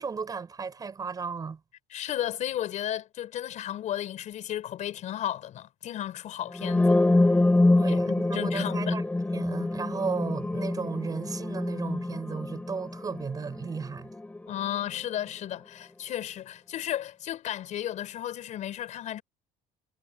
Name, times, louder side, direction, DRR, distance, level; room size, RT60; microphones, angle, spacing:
voice 1, 0.0-1.6 7.8-9.0 9.3-14.1, right 5 dB, 25° right, 4.6 m, -34 dB
voice 2, 1.9-7.0 7.9-9.0 14.5-19.2, left 11 dB, 50° left, 5.1 m, -34 dB
sound 1, 6.5-14.4, left 2 dB, 10° left, 5.9 m, -25 dB
cardioid pair, 135°, 16 cm